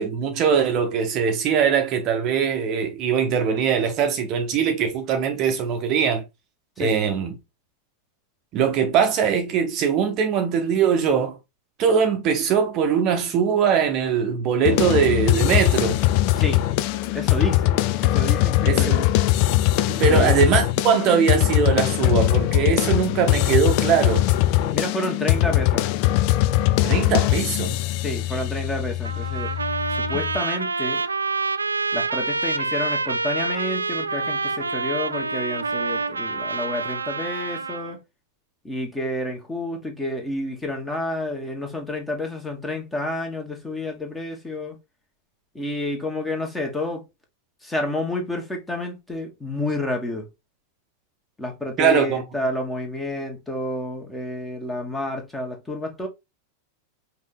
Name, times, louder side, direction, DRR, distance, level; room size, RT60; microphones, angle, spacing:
voice 1, 0.0-6.2 6.8-7.3 8.5-11.4 11.8-16.0 18.7-19.0 19.9-24.2 26.8-27.8 51.8-52.2, right 7 dB, 35° right, 0.8 m, -21 dB
sound 1, 14.6-30.4, left 15 dB, 45° left, 0.4 m, -21 dB
voice 2, 17.1-18.9 20.1-20.4 24.7-25.9 28.0-29.5 29.9-31.0 31.9-38.0 38.6-44.8 45.5-47.0 47.6-50.3 51.4-56.1, left 1 dB, 10° left, 1.4 m, -29 dB
Trumpet, 29.0-38.0, right 3 dB, 75° right, 0.3 m, -27 dB
5.2 x 2.8 x 3.6 m
figure-of-eight pair, 90°, 0 cm